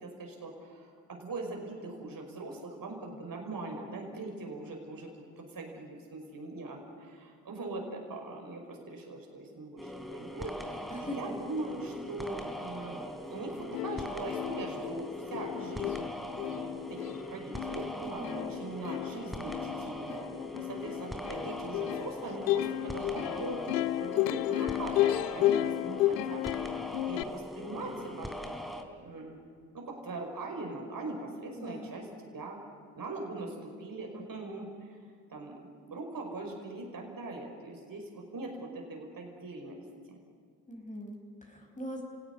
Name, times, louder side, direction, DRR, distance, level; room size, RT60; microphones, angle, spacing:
voice 1, 0.0-5.1 5.4-16.1 16.7-26.4 26.7-28.3 29.0-29.4 29.7-32.6 33.0-35.0 35.3-35.6 35.9-39.8, right 2 dB, 45° right, 1 dB, 5.5 m, -41 dB
sound 1, 9.8-28.8, equal, ahead, 3.5 m, -41 dB
voice 2, 10.9-11.3 18.0-18.6 31.5-32.0 40.7-42.0, equal, 15° left, 1 dB, 5.6 m, -41 dB
Plucked string instrument, 13.4-13.5 13.7-27.2, left 14 dB, 85° left, 0.7 m, -33 dB
29.5 x 17.5 x 9.8 m, 2.1 s
hypercardioid pair, 40°, 48 cm